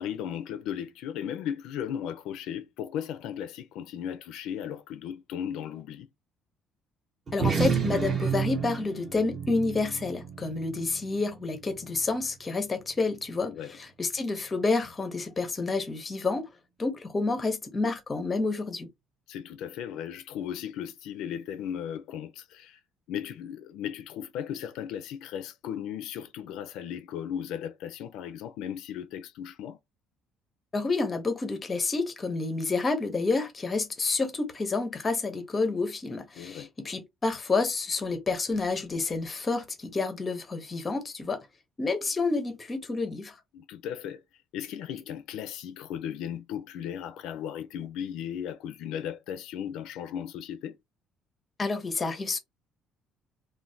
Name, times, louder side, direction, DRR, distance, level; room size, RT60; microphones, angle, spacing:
voice 1, 0.0-6.1 13.4-13.7 19.3-22.8 23.1-29.8 36.4-36.7 43.5-44.2 44.5-50.8, left 9 dB, 75° left, 0.4 m, -36 dB
voice 2, 7.3-16.5 16.8-18.9 30.7-41.5 41.8-43.4 51.6-52.4, left 3 dB, 20° left, 0.5 m, -29 dB
sound 1, 7.3-12.1, right 6 dB, 25° right, 0.7 m, -31 dB
3.1 x 2.1 x 2.5 m
cardioid pair, 165°, 0 cm